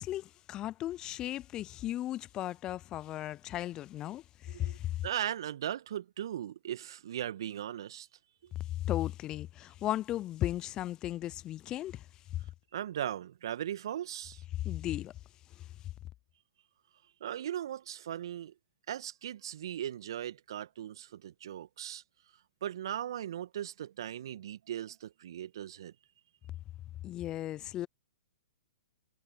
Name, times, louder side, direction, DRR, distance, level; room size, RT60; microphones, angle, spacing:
voice 1, 0.0-5.0 8.8-12.1 12.3-12.4 14.6-15.1 15.6-15.7 27.0-27.9, left 13 dB, 25° left, 0.6 m, -36 dB
voice 2, 4.5-4.8 5.0-8.1 12.7-14.4 17.2-18.5 18.9-22.0 22.6-25.9, right 11 dB, 60° right, 1.8 m, -38 dB
figure-of-eight pair, 110°, 3 cm